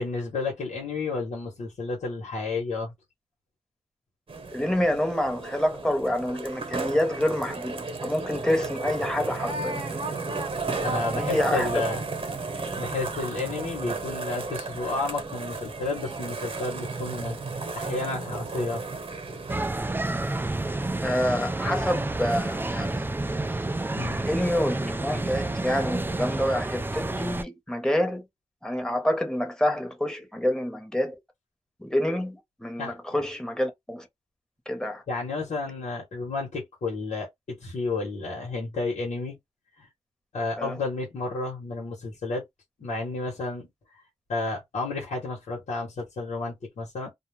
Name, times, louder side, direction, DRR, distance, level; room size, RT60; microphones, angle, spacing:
voice 1, 0.0-2.9 10.8-12.0 12.7-17.4 17.7-18.8 24.0-24.2 32.8-32.9 35.1-39.3 39.8-39.9 40.3-42.4 42.8-43.7 44.3-47.1, left 3 dB, 80° left, 1.0 m, -31 dB
sound 1, 4.3-19.7, right 3 dB, 50° right, 1.0 m, -33 dB
voice 2, 4.5-9.8 11.1-11.8 21.0-23.2 24.1-28.2 28.6-31.2 31.8-34.1 34.7-35.0 40.6-40.8, left 1 dB, 5° left, 1.0 m, -27 dB
sound 2, 19.5-27.4, right 2 dB, 15° right, 0.4 m, -29 dB
2.3 x 2.0 x 3.1 m
cardioid pair, 50°, 12 cm